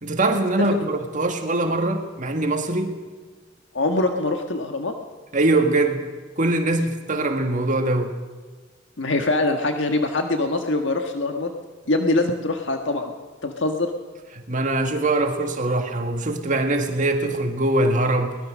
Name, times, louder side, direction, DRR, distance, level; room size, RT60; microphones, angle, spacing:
voice 1, 0.0-2.9 5.3-6.0 6.4-8.1 14.5-18.4, right 2 dB, 45° right, 4 dB, 1.9 m, -22 dB
voice 2, 3.7-4.9 9.0-11.5 11.9-13.1 13.4-13.9, left 2 dB, 70° left, 5 dB, 1.6 m, -23 dB
23.5 x 20.0 x 6.4 m, 1.5 s
head